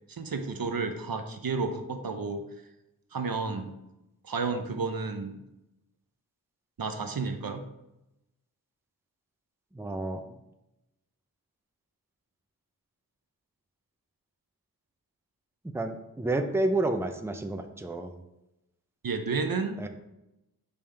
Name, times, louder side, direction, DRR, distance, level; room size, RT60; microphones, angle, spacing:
voice 1, 0.1-2.4 3.1-3.7 4.2-5.4 6.8-7.6 19.0-19.8, right 4 dB, 75° right, 6 dB, 0.8 m, -31 dB
voice 2, 9.7-10.2 15.7-18.1 19.8-19.9, right 2 dB, 5° right, 6 dB, 0.6 m, -30 dB
7.0 x 5.4 x 3.4 m, 0.90 s
wide cardioid pair, 75°, 35 cm